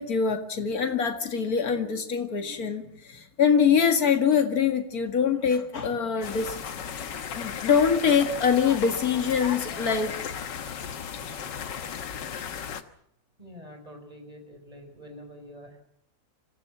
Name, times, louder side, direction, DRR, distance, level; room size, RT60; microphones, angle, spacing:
voice 1, 0.0-10.3, left 6 dB, 50° left, 2.4 m, -24 dB
sound 1, 6.2-12.8, left 7 dB, 70° left, 1.9 m, -36 dB
voice 2, 13.4-15.8, equal, 20° right, 5.2 m, -46 dB
26.0 x 16.0 x 7.4 m
omnidirectional pair, 2.0 m